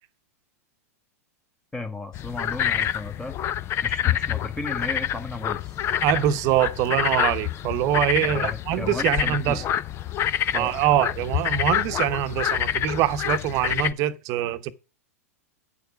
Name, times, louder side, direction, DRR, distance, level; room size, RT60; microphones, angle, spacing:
voice 1, 1.7-3.4 3.8-5.8 8.2-9.6 10.5-10.9, left 3 dB, 10° left, 1.4 m, -35 dB
sound 1, 2.1-13.9, left 10 dB, 30° left, 0.5 m, -27 dB
voice 2, 6.0-9.6 10.5-14.7, right 12 dB, 45° right, 0.9 m, -24 dB
8.8 x 6.8 x 5.2 m
hypercardioid pair, 100°, 8 cm